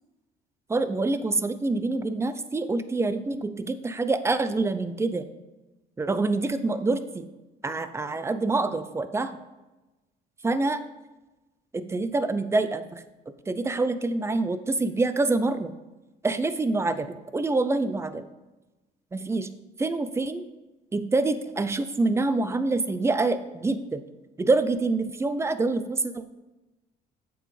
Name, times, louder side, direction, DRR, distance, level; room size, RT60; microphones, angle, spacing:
voice 1, 0.7-5.3 6.0-7.3 7.6-9.4 10.4-10.8 11.7-13.0 13.5-15.7 16.2-17.1 17.3-18.2 19.1-19.5 19.8-20.4 20.9-24.0 24.4-26.3, right 3 dB, 15° right, 12 dB, 0.5 m, -26 dB
8.8 x 7.0 x 3.3 m, 1.1 s
cardioid pair, 110°, 17 cm